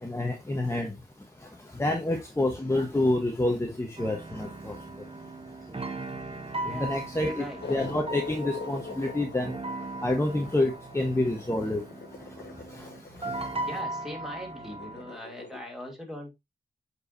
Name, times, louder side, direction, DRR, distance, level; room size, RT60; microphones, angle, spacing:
voice 1, 0.0-0.9 1.8-4.8 6.6-9.5 10.0-11.8 12.7-12.9, left 1 dB, 15° left, 1.3 m, -28 dB
sound 1, 4.0-15.1, right 2 dB, 30° right, 1.1 m, -38 dB
voice 2, 6.6-7.6 13.7-16.3, equal, ahead, 2.9 m, -41 dB
sound 2, 7.6-15.6, left 4 dB, 75° left, 1.4 m, -43 dB
8.0 x 4.8 x 2.8 m
cardioid pair, 65°, 18 cm